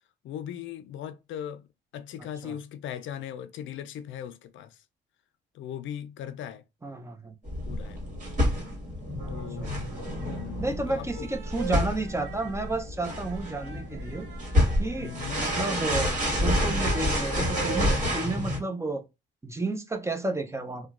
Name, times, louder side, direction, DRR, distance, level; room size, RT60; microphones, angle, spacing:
voice 1, 0.2-1.7 1.9-4.8 5.5-6.6 7.7-8.1 9.3-9.7 10.2-11.3 15.0-15.4, left 10 dB, 75° left, 0.4 m, -39 dB
voice 2, 6.8-7.3 9.2-9.3 9.6-9.7 10.6-14.3 14.8-19.0 19.4-20.9, right 2 dB, 15° right, 0.6 m, -32 dB
sound 1, 7.4-18.6, left 1 dB, 40° right, 1.7 m, -29 dB
sound 2, 9.7-10.4 11.0-18.0, right 7 dB, 60° right, 0.8 m, -43 dB
2.9 x 2.2 x 3.5 m
cardioid pair, 90°, 20 cm